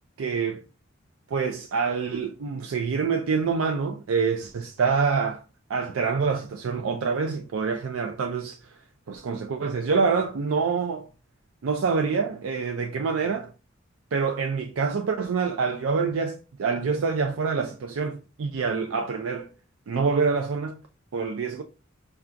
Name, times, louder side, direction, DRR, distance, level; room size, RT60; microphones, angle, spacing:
voice 1, 0.2-0.6 1.3-5.4 5.7-8.8 9.1-11.1 11.6-13.5 14.1-19.5 19.9-20.8 21.1-21.6, right 5 dB, 90° right, 0.4 m, -26 dB
5.6 x 2.3 x 2.5 m
head